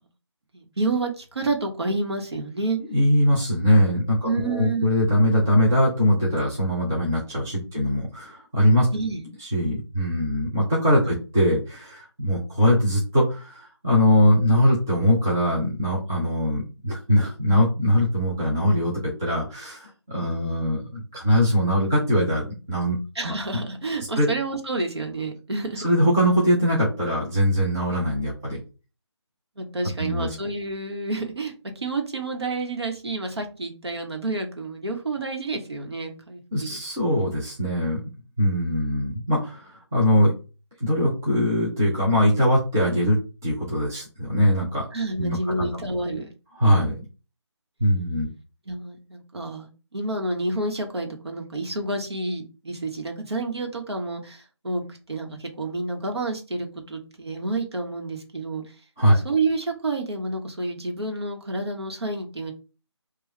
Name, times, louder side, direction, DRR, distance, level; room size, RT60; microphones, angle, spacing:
voice 1, 0.5-2.8 4.2-4.9 7.7-7.8 8.9-9.3 23.1-25.9 29.6-36.8 44.9-46.3 48.7-58.6 59.1-62.5, right 2 dB, 65° right, 3 dB, 1.2 m, -29 dB
voice 2, 2.9-8.9 9.4-23.0 23.2-23.6 24.2-24.3 25.8-28.6 30.0-30.3 36.5-38.0 38.4-40.3 40.8-44.9 45.2-45.7 46.6-46.9 47.8-48.3 59.0-59.2, equal, 5° right, -6 dB, 0.3 m, -22 dB
4.6 x 2.4 x 3.1 m, 0.32 s
figure-of-eight pair, 155°, 15 cm